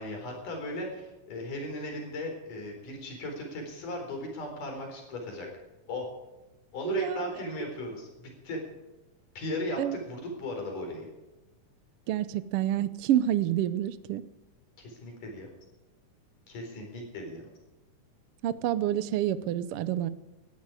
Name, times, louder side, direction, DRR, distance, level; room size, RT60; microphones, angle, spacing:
voice 1, 0.0-5.5 5.9-6.1 6.7-8.6 9.4-11.1 14.8-15.5 16.5-17.5, left 1 dB, 85° left, 2 dB, 5.7 m, -37 dB
voice 2, 6.8-7.2 9.8-10.0 12.1-14.2 18.4-20.1, right 12 dB, 75° right, 14 dB, 1.3 m, -28 dB
18.0 x 13.0 x 4.9 m, 1.1 s
omnidirectional pair, 3.6 m